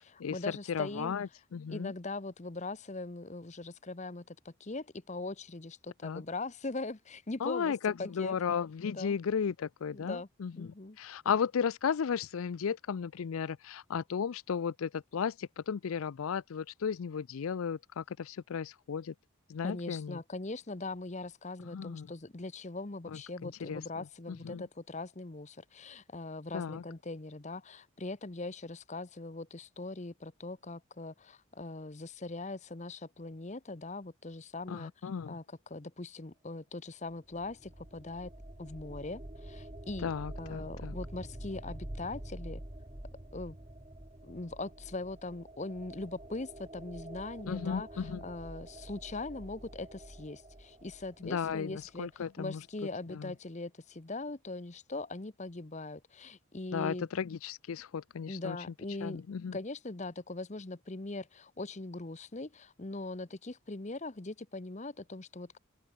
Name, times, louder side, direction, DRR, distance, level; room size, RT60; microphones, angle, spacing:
voice 1, 0.0-1.1 1.7-7.7 8.0-8.3 8.8-9.2 9.9-10.3 10.5-11.0 19.6-34.9 35.3-38.3 38.6-40.1 40.4-42.6 43.3-43.6 44.2-57.1 58.3-59.2 59.5-65.6, left 2 dB, 30° left, 0.9 m, -41 dB
voice 2, 0.7-1.9 6.0-6.2 7.4-19.1 19.5-20.2 21.7-22.1 23.1-24.0 24.4-24.6 26.5-26.8 34.7-35.4 40.0-40.9 47.5-48.2 51.2-52.6 53.1-53.3 56.7-58.6 59.0-59.6, left 6 dB, 75° left, 0.4 m, -35 dB
sound 1, 37.3-51.9, right 1 dB, 25° right, 1.8 m, -47 dB
open air
head